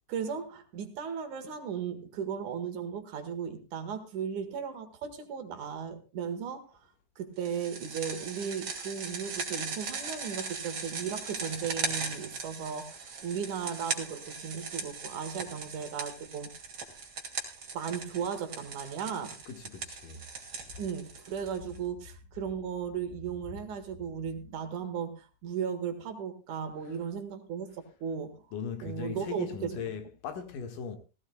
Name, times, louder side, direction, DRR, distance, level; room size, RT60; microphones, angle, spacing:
voice 1, 0.1-6.8 7.2-16.5 17.7-19.3 20.8-28.4 28.8-29.9, right 7 dB, 65° right, 2.8 m, -36 dB
sound 1, 7.4-21.8, right 4 dB, 40° right, 2.9 m, -39 dB
voice 2, 19.5-20.3 26.8-27.0 28.5-31.0, left 6 dB, 75° left, 3.1 m, -39 dB
17.5 x 16.0 x 2.2 m
omnidirectional pair, 3.9 m